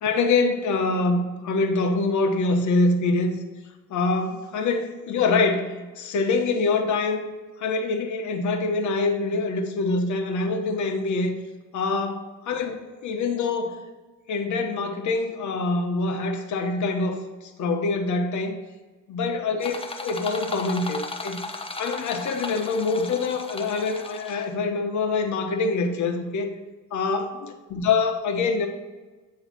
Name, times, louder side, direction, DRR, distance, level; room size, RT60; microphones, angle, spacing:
voice 1, 0.0-3.3 3.9-7.3 7.6-11.3 11.7-13.8 14.3-17.2 17.6-18.6 19.1-19.8 20.0-21.4 21.8-26.5 26.9-28.7, left 3 dB, 70° left, 4 dB, 1.2 m, -25 dB
sound 1, 19.6-24.6, left 3 dB, 20° left, 0.8 m, -36 dB
9.3 x 3.2 x 6.2 m, 1.3 s
cardioid pair, 90°, 30 cm